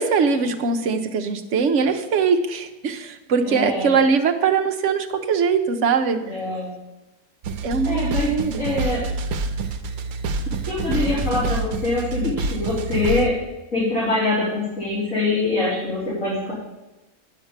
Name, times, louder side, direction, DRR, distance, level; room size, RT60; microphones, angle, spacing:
voice 1, 0.0-6.2 7.6-8.7, right 5 dB, 60° right, 5 dB, 1.1 m, -21 dB
voice 2, 3.4-3.9 6.1-6.7 7.8-8.3 8.6-9.0 10.7-13.3 13.7-16.5, left 2 dB, 60° left, -11 dB, 4.1 m, -24 dB
sound 1, 7.4-13.3, right 3 dB, 80° right, 1.2 m, -27 dB
9.1 x 6.6 x 7.2 m, 1.1 s
omnidirectional pair, 1.6 m